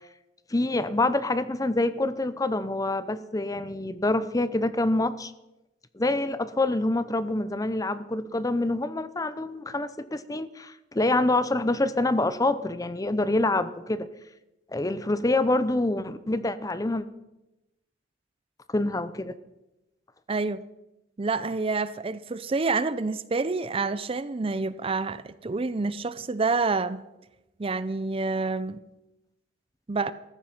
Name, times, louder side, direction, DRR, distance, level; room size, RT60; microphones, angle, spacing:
voice 1, 0.5-5.3 5.9-14.1 14.7-17.0 18.7-19.3, left 2 dB, 20° left, 14 dB, 0.6 m, -26 dB
voice 2, 20.3-20.6 21.2-27.0 27.6-28.8 29.9-30.1, right 3 dB, 30° right, 15 dB, 0.5 m, -28 dB
14.5 x 13.5 x 5.7 m, 0.95 s
head